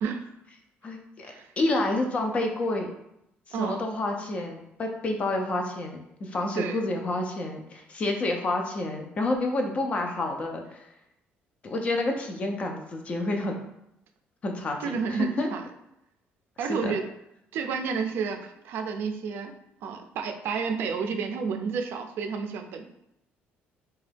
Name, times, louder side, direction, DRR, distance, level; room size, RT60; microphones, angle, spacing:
voice 1, 0.0-0.3 1.2-1.5 3.5-3.8 6.5-6.8 14.8-15.6 16.6-17.1 17.5-19.5 19.8-22.9, right 5 dB, 65° right, 6 dB, 0.4 m, -30 dB
voice 2, 0.8-2.9 3.6-10.9 11.6-13.6 14.4-15.5 16.7-17.0, left 2 dB, 30° left, 3 dB, 0.4 m, -29 dB
2.9 x 2.2 x 3.3 m, 0.81 s
cardioid pair, 155°, 4 cm